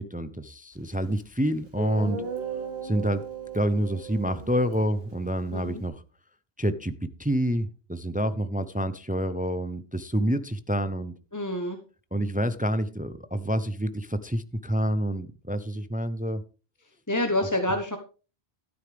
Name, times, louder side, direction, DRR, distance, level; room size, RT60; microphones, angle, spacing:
voice 1, 0.0-2.3 2.8-3.2 3.5-6.0 6.6-11.2 12.1-16.4, equal, 10° right, 0.5 m, -28 dB
Guitar, 1.2-1.3 1.8-5.9, right 6 dB, 65° right, 3.8 m, -37 dB
voice 2, 5.5-5.8 11.3-11.8 17.1-18.0, left 1 dB, 20° left, 1.1 m, -27 dB
13.0 x 9.8 x 3.4 m
omnidirectional pair, 1.1 m